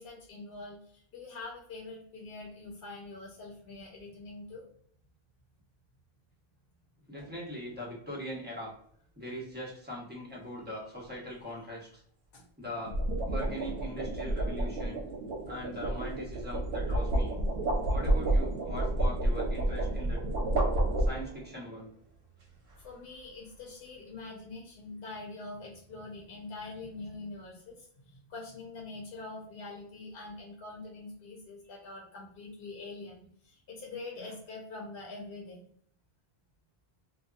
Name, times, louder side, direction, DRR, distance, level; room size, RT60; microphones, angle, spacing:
voice 1, 0.0-4.6 12.3-12.4 22.8-35.7, left 3 dB, 65° left, -2 dB, 0.9 m, -44 dB
voice 2, 7.1-8.7 9.2-12.0 12.6-13.0 13.2-15.0 15.5-17.4 17.9-20.2 21.0-21.9 34.2-34.3, equal, 10° right, -4 dB, 0.8 m, -41 dB
sound 1, 7.2-7.5 12.6-21.5, right 1 dB, 75° right, 0.9 m, -30 dB
2.7 x 2.2 x 2.4 m, 0.62 s
omnidirectional pair, 1.0 m